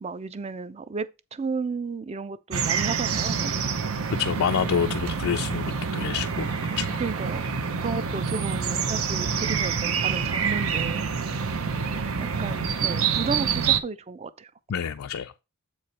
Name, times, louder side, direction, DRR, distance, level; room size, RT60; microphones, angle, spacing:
voice 1, 0.0-3.5 7.0-7.5 7.8-11.0 12.2-14.5, right 4 dB, 30° right, 0.5 m, -33 dB
sound 1, 2.5-13.8, right 6 dB, 75° right, 0.7 m, -27 dB
voice 2, 4.2-6.5 6.8-7.0 14.7-15.4, left 8 dB, 70° left, 0.4 m, -28 dB
7.6 x 4.7 x 4.1 m
head